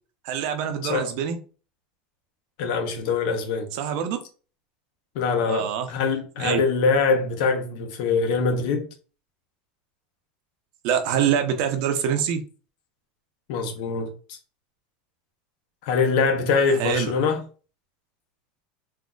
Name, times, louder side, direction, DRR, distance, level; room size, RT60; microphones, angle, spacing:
voice 1, 0.2-1.4 3.7-4.2 5.4-5.9 6.4-6.6 10.8-12.4 16.7-17.1, right 8 dB, 65° right, 0.7 m, -25 dB
voice 2, 2.6-3.7 5.1-8.9 13.5-14.4 15.8-17.4, left 4 dB, 70° left, 0.9 m, -23 dB
3.9 x 2.7 x 2.3 m
supercardioid pair, 120°, 5 cm